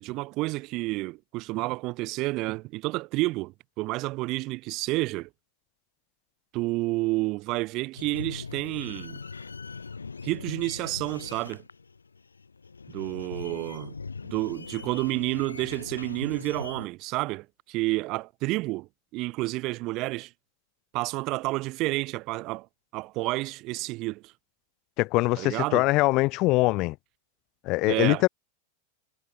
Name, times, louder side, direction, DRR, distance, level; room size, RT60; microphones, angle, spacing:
voice 1, 0.0-5.3 6.5-9.2 10.2-11.6 12.9-13.9 14.2-20.3 20.9-22.7 22.9-24.3 25.4-25.9 27.8-28.3, right 21 dB, 40° right, 0.4 m, -30 dB
sound 1, 8.0-16.9, left 4 dB, 75° left, 2.0 m, -40 dB
voice 2, 25.0-27.0 27.6-28.3, left 22 dB, 40° left, 0.4 m, -23 dB
figure-of-eight pair, 90°, 0 cm